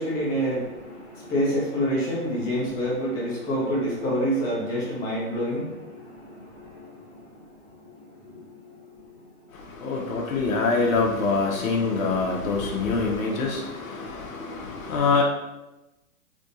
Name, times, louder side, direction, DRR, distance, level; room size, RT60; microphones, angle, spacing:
voice 1, 0.0-10.1, equal, 10° left, 0.5 m, -29 dB
voice 2, 9.5-15.2, left 4 dB, 65° left, 0.8 m, -25 dB
3.5 x 2.7 x 2.5 m
hypercardioid pair, 135°, 44 cm